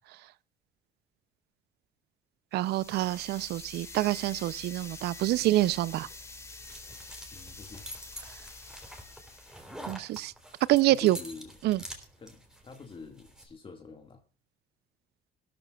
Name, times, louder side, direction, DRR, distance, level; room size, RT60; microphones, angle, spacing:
sound 1, 2.5-9.7, left 3 dB, 15° left, 2.0 m, -47 dB
voice 1, 2.5-6.1 9.9-10.3 10.7-11.2 11.6-11.8, right 16 dB, 75° right, 0.6 m, -26 dB
sound 2, 6.0-13.5, equal, 5° right, 3.5 m, -47 dB
voice 2, 7.3-7.9 10.9-11.6 12.2-14.2, left 4 dB, 30° left, 1.9 m, -46 dB
17.0 x 13.0 x 2.4 m
cardioid pair, 110°, 17 cm